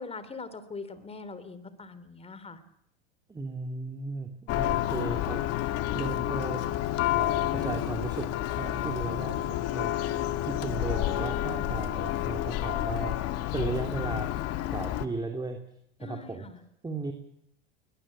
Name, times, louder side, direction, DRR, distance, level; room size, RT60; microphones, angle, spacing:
voice 1, 0.0-2.6 14.0-14.1 16.0-16.6, left 4 dB, 20° left, 13 dB, 3.3 m, -42 dB
voice 2, 3.3-5.4 5.9-6.6 7.1-8.3 8.6-10.1 10.5-13.1 13.5-14.3 14.7-15.6 16.0-16.5 16.8-17.1, right 3 dB, 15° right, 4 dB, 3.0 m, -35 dB
Church bell, 4.5-15.1, left 14 dB, 50° left, 1.9 m, -30 dB
21.5 x 21.0 x 8.8 m, 0.73 s
hypercardioid pair, 100°, 31 cm